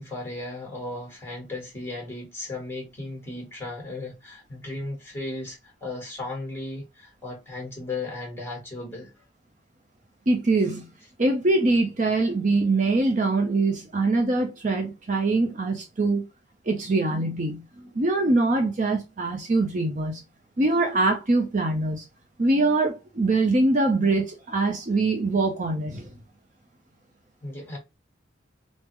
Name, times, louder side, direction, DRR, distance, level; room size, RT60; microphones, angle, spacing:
voice 1, 0.0-9.1 27.4-27.8, left 2 dB, 10° left, 1.3 m, -35 dB
voice 2, 10.3-10.9 11.2-16.3 16.7-20.2 20.6-22.0 22.4-26.1, right 2 dB, 40° right, 0.6 m, -23 dB
3.5 x 2.0 x 3.1 m
head